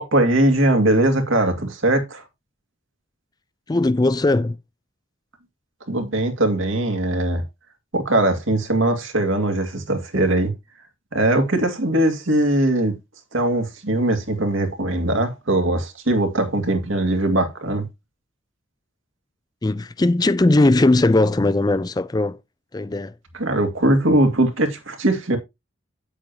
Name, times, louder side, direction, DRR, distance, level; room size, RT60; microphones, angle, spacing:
voice 1, 0.0-2.2 5.9-7.4 7.9-10.5 11.1-12.9 13.3-17.8 23.3-25.4, right 1 dB, 80° right, 2.4 m, -20 dB
voice 2, 3.7-4.6 19.6-22.4 22.7-23.1, left 2 dB, 20° left, 0.4 m, -19 dB
9.1 x 8.2 x 2.8 m
head